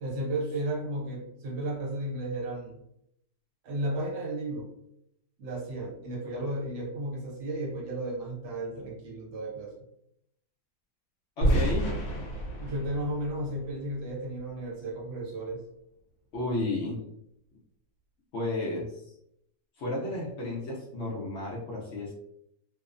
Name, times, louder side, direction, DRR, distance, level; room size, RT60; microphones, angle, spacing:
voice 1, 0.0-2.8 3.6-4.7 5.4-9.7 12.6-15.6, right 1 dB, 70° right, -2 dB, 1.4 m, -34 dB
voice 2, 11.4-11.9 16.3-17.0 18.3-19.1 19.8-22.1, left 2 dB, 85° left, -4 dB, 0.6 m, -32 dB
sound 1, 11.4-14.4, right 1 dB, 70° left, 1.0 m, -30 dB
2.9 x 2.0 x 2.4 m, 0.77 s
omnidirectional pair, 1.9 m